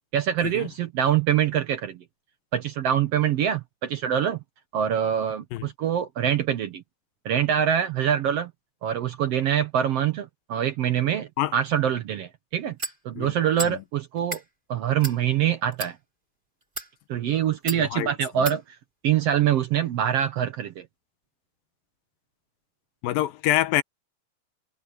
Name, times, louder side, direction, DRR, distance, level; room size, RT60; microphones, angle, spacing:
voice 1, 0.1-2.0 2.5-4.4 4.7-6.8 7.2-8.5 8.8-12.8 13.0-14.4 14.7-16.0 17.1-18.6 19.0-20.8, right 9 dB, 75° right, 1.4 m, -24 dB
sound 1, 12.8-13.0 13.6-13.8 14.2-14.4 15.0-15.2 15.7-15.9 16.6-16.9 17.7-17.8 18.4-18.6, right 2 dB, 15° right, 2.8 m, -32 dB
voice 2, 17.7-18.1 23.0-23.8, left 14 dB, 80° left, 2.5 m, -25 dB
omnidirectional pair, 4.1 m